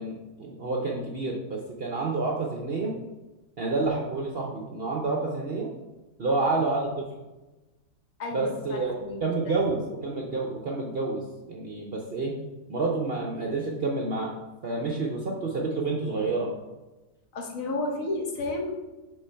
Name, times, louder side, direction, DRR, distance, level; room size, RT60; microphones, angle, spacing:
voice 1, 0.0-2.9 3.6-5.7 6.2-7.0 8.3-8.9 9.2-11.2 11.5-12.3 12.7-14.3 14.6-16.5, right 3 dB, 50° right, -1 dB, 0.7 m, -29 dB
voice 2, 8.2-9.6 17.3-18.8, left 2 dB, 60° left, 2 dB, 1.2 m, -32 dB
4.8 x 3.8 x 5.5 m, 1.1 s
omnidirectional pair, 1.7 m